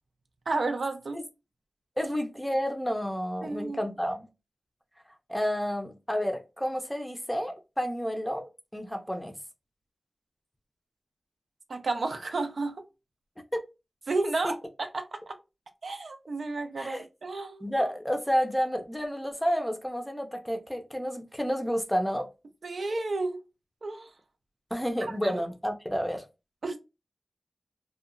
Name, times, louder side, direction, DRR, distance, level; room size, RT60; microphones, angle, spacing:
voice 1, 0.5-1.2 3.4-3.8 11.7-12.8 14.1-15.4 15.8-17.7 22.6-23.4 23.8-24.1 25.0-25.4 26.6-26.8, right 3 dB, 75° right, 0.5 m, -32 dB
voice 2, 2.0-4.3 5.3-9.3 13.5-13.6 14.4-14.6 16.8-17.0 17.6-22.3 24.7-26.3, equal, 5° left, 0.5 m, -30 dB
2.8 x 2.2 x 2.4 m
wide cardioid pair, 85°, 0 cm